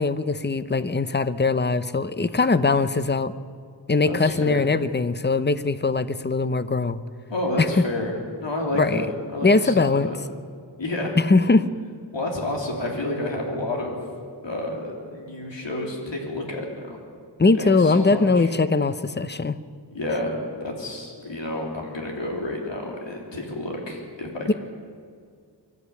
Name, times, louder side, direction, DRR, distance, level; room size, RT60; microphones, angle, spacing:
voice 1, 0.0-3.3 3.9-7.0 7.6-7.7 8.7-9.1 9.4-10.1 11.3-11.6 17.4-19.6 24.5-24.6, left 3 dB, 25° left, 13 dB, 0.8 m, -21 dB
voice 2, 4.1-4.7 7.3-10.2 10.8-11.2 12.1-14.0 14.4-17.0 17.5-18.5 19.9-24.5, left 1 dB, 85° left, 0 dB, 3.6 m, -30 dB
24.0 x 13.5 x 8.3 m, 2.1 s
wide cardioid pair, 65°, 43 cm